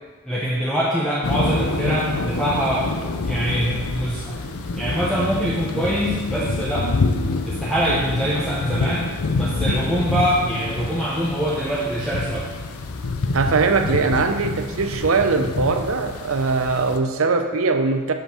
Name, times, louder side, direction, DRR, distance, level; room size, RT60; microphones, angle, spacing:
voice 1, 0.2-3.0 3.3-4.4 4.7-6.9 7.5-9.1 9.4-12.5, equal, 5° left, -7 dB, 0.7 m, -24 dB
sound 1, 1.2-17.0, left 3 dB, 80° left, 0.6 m, -26 dB
voice 2, 13.3-18.1, right 4 dB, 70° right, 7 dB, 0.6 m, -21 dB
5.3 x 5.1 x 6.2 m, 1.3 s
head